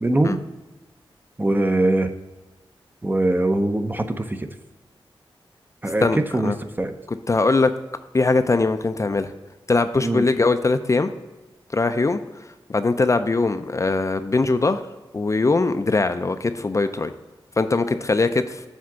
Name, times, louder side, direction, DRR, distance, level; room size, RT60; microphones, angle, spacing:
voice 1, 0.0-0.4 1.4-2.1 3.0-4.5 5.8-6.1 6.3-6.9 10.0-10.3, right 2 dB, 20° right, 7 dB, 0.6 m, -22 dB
voice 2, 6.0-6.6 7.3-7.7 8.1-9.3 9.7-11.1 11.7-12.2 12.7-14.8 15.1-17.1 17.6-18.6, left 3 dB, 35° left, 9 dB, 0.4 m, -21 dB
7.4 x 3.5 x 5.9 m, 1.1 s
cardioid pair, 65°, 9 cm